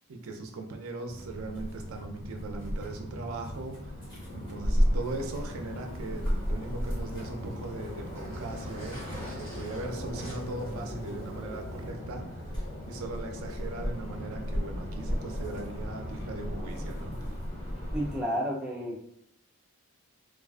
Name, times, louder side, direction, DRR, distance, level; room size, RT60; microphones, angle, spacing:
voice 1, 0.1-12.5 12.9-17.4, right 2 dB, 75° right, 4 dB, 0.4 m, -39 dB
sound 1, 1.1-18.2, equal, 20° left, 0.8 m, -34 dB
Zipper (clothing), 5.0-11.9, right 1 dB, 60° left, 1.1 m, -49 dB
voice 2, 17.9-19.0, equal, 5° right, -5 dB, 0.4 m, -31 dB
2.4 x 2.3 x 2.2 m, 0.70 s
head